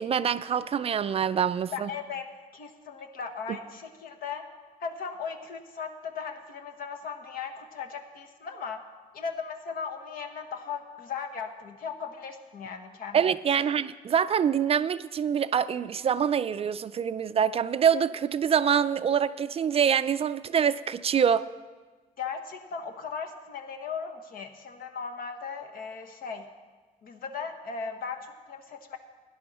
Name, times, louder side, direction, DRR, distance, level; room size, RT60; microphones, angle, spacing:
voice 1, 0.0-1.9 3.5-3.6 13.1-21.5, right 8 dB, 40° right, 14 dB, 0.4 m, -25 dB
voice 2, 1.7-2.3 2.5-4.4 4.8-8.8 9.1-13.2 13.6-13.7 22.2-26.4 27.0-29.0, left 6 dB, 70° left, 5 dB, 1.3 m, -37 dB
16.5 x 10.5 x 4.2 m, 1.3 s
cardioid pair, 125°, 16 cm